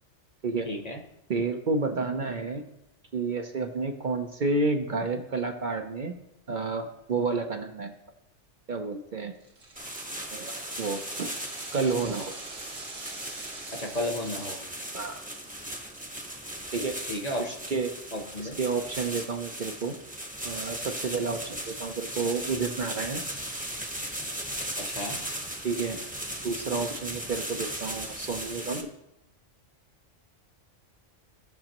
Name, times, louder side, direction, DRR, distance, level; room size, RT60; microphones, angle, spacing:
voice 1, 0.6-1.0 13.7-14.6 17.1-17.5 18.1-18.6 24.8-25.2, left 1 dB, 35° left, 3 dB, 1.0 m, -33 dB
voice 2, 1.3-2.6 3.1-6.2 6.5-7.9 8.7-9.3 10.3-11.3 11.7-12.3 14.9-15.2 16.7-17.0 17.7-17.9 18.4-19.9 20.4-23.2 25.6-26.0 26.4-28.9, right 4 dB, 50° right, 4 dB, 0.8 m, -30 dB
sound 1, 9.4-16.7 17.1-17.2, right 2 dB, 70° right, 1.9 m, -45 dB
sound 2, 9.8-28.8, right 1 dB, 10° right, 0.9 m, -37 dB
16.0 x 6.2 x 3.0 m, 0.87 s
omnidirectional pair, 1.2 m